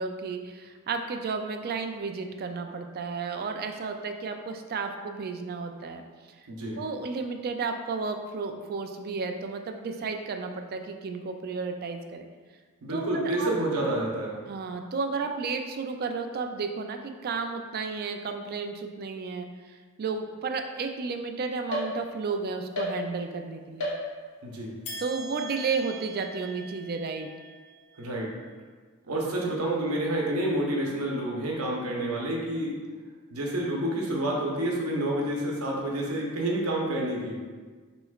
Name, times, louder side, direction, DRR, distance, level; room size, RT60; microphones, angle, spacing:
voice 1, 0.0-6.0 6.8-12.3 12.9-13.5 14.5-19.5 20.0-23.9 25.0-27.3 29.1-29.2, right 4 dB, 45° right, 5 dB, 0.3 m, -32 dB
voice 2, 6.5-6.8 12.8-14.4 24.4-24.8 28.0-28.3 29.1-32.7 33.3-37.4, right 1 dB, 90° right, -2 dB, 0.9 m, -29 dB
sound 1, 21.7-22.4 22.7-23.4 23.8-24.5 24.8-28.3, equal, 80° left, 1.0 m, -37 dB
6.1 x 3.1 x 2.4 m, 1.5 s
head